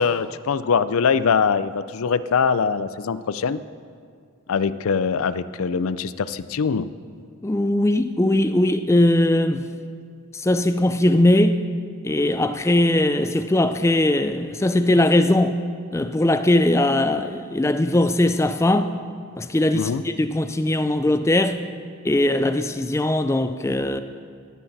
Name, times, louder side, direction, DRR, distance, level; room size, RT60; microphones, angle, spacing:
voice 1, 0.0-3.6 4.5-6.9 19.7-20.0, left 6 dB, 80° left, 0.4 m, -22 dB
voice 2, 7.4-9.7 10.3-11.6 12.0-15.6 15.9-19.0 19.4-21.6 22.0-24.0, left 1 dB, 15° left, 0.4 m, -20 dB
17.5 x 12.0 x 4.1 m
head